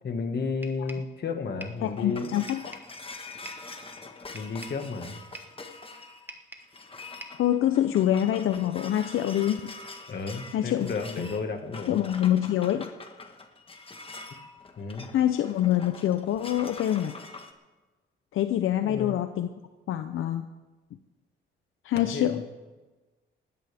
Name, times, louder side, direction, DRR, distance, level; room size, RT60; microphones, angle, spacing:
voice 1, 0.0-2.3 4.3-5.2 10.1-12.0 14.8-15.1 18.8-19.2 21.9-22.4, left 4 dB, 50° left, 5 dB, 1.8 m, -32 dB
sound 1, 0.6-1.1 1.6-1.9 2.5-3.0 3.5-3.7 4.4-4.9 5.3-5.6 6.3-6.8 7.2-7.5, right 1 dB, 10° right, 1.2 m, -45 dB
sound 2, 1.5-17.5, left 3 dB, 25° left, 1.4 m, -44 dB
voice 2, 1.8-2.8 7.4-9.7 10.5-10.9 11.2-11.3 11.9-12.9 15.1-17.1 18.3-19.5 19.9-20.5 21.8-22.4, left 11 dB, 80° left, 8 dB, 0.7 m, -25 dB
19.5 x 14.5 x 3.5 m, 1.2 s
cardioid pair, 100°, 21 cm